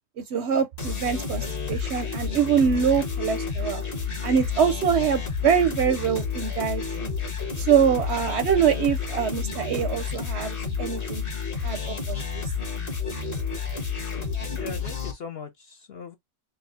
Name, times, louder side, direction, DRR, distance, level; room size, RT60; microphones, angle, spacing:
voice 1, 0.3-3.8 4.2-7.1 7.6-11.2 11.6-12.4, right 7 dB, 65° right, 0.7 m, -24 dB
sound 1, 0.8-15.1, left 5 dB, 40° left, 1.5 m, -30 dB
voice 2, 14.1-16.2, left 6 dB, 60° left, 0.7 m, -40 dB
4.1 x 2.2 x 4.0 m
omnidirectional pair, 1.5 m